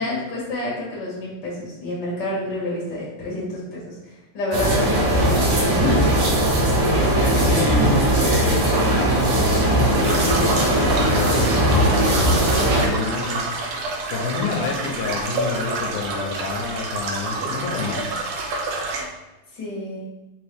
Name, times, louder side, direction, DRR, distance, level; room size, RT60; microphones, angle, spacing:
voice 1, 0.0-3.9 4.3-6.0 6.9-7.7 19.5-20.1, left 1 dB, 40° left, -6 dB, 2.0 m, -28 dB
sound 1, 4.5-12.9, right 1 dB, 60° right, 1.6 m, -19 dB
voice 2, 7.2-13.8 14.1-18.1, left 4 dB, 85° left, 0 dB, 2.1 m, -29 dB
sound 2, 9.9-19.0, right 2 dB, 85° right, 1.3 m, -28 dB
5.1 x 3.0 x 3.3 m, 1.0 s
omnidirectional pair, 3.5 m